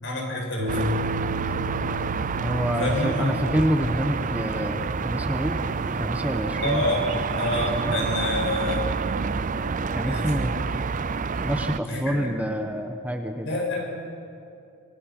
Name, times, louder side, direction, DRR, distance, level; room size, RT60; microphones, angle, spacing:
voice 1, 0.0-0.9 2.8-3.4 6.6-8.9 10.1-10.5 11.9-12.2 13.4-13.9, left 2 dB, 60° left, 0 dB, 6.7 m, -28 dB
sound 1, 0.6-7.6, left 1 dB, 70° right, 4.3 m, -36 dB
sound 2, 0.7-11.8, right 5 dB, 40° right, 0.5 m, -28 dB
voice 2, 2.4-7.1 7.8-7.9 9.9-10.5 11.4-13.5, equal, 5° right, 4 dB, 1.1 m, -27 dB
25.5 x 23.5 x 6.0 m, 2.5 s
head